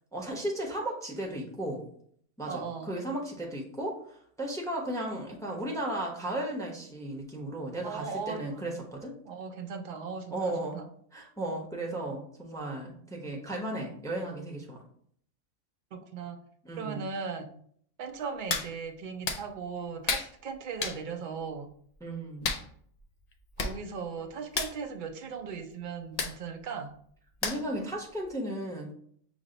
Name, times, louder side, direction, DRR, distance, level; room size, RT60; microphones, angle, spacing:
voice 1, 0.1-1.8 2.4-9.2 10.3-10.8 11.1-14.8 16.6-17.1 22.0-22.5 27.4-28.9, right 1 dB, 5° left, -1 dB, 0.6 m, -35 dB
voice 2, 2.5-3.0 7.8-8.8 9.3-10.8 15.9-16.4 16.8-17.5 18.0-21.7 23.6-26.9, right 5 dB, 55° right, 5 dB, 0.5 m, -38 dB
Hands, 18.5-18.7 19.2-19.4 20.1-20.3 20.8-21.0 22.4-22.6 23.3-23.4 23.6-23.8 24.0-24.2 24.5-24.7 26.2-26.3 27.4-27.8 28.2-28.3, left 4 dB, 75° left, 0.3 m, -31 dB
6.0 x 2.0 x 3.8 m, 0.62 s
omnidirectional pair, 1.3 m